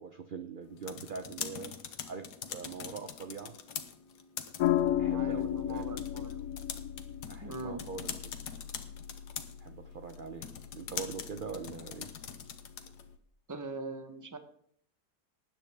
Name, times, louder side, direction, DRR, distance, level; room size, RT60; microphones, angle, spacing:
voice 1, 0.0-1.7 2.1-3.5 5.0-5.9 7.3-8.3 9.6-12.1, right 5 dB, 45° right, 7 dB, 0.7 m, -43 dB
sound 1, 0.6-13.1, left 8 dB, 80° left, 1.5 m, -44 dB
sound 2, 4.6-13.2, left 11 dB, 65° left, 1.0 m, -36 dB
voice 2, 5.1-6.4 7.4-7.8 13.5-14.4, right 3 dB, 15° right, 8 dB, 0.8 m, -41 dB
19.0 x 9.0 x 3.5 m, 0.64 s
omnidirectional pair, 1.7 m